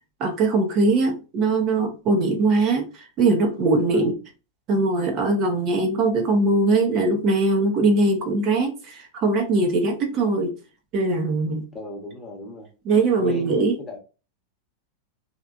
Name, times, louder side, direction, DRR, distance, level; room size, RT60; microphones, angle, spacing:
voice 1, 0.2-4.1 4.7-10.6 10.9-11.7 12.8-13.8, right 3 dB, 35° right, 0.7 m, -21 dB
voice 2, 11.7-12.7 13.2-14.0, left 1 dB, 15° left, 1.0 m, -36 dB
3.2 x 2.8 x 2.5 m
figure-of-eight pair, 90°, 0 cm